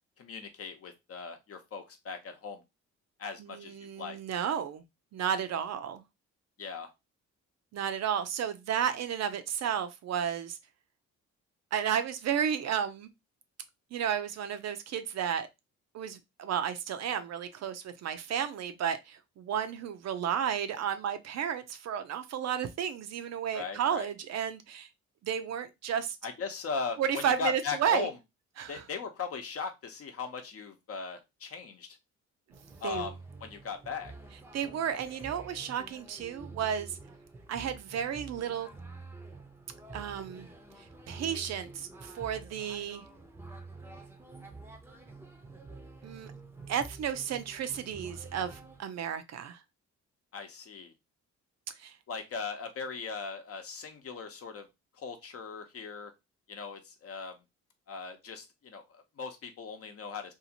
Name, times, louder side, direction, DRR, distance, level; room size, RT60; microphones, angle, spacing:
voice 1, 0.2-2.6 3.2-4.2 6.6-6.9 23.5-24.1 26.2-28.1 28.7-32.0 32.8-34.1 50.3-50.9 52.1-54.7 55.0-56.1 56.5-57.4 57.9-60.3, left 5 dB, 50° left, 0.8 m, -39 dB
voice 2, 3.4-4.8 5.1-6.0 7.7-10.6 11.7-13.1 13.9-15.5 15.9-24.9 25.2-26.2 27.0-28.1 28.6-28.8 32.8-33.1 34.5-37.0 37.5-38.7 39.9-40.5 41.1-43.0 46.0-46.3 46.7-49.6 51.8-51.9, right 8 dB, 60° right, 0.5 m, -32 dB
sound 1, 32.5-48.8, right 3 dB, 10° right, 0.6 m, -48 dB
2.7 x 2.5 x 2.8 m
cardioid pair, 90°, 30 cm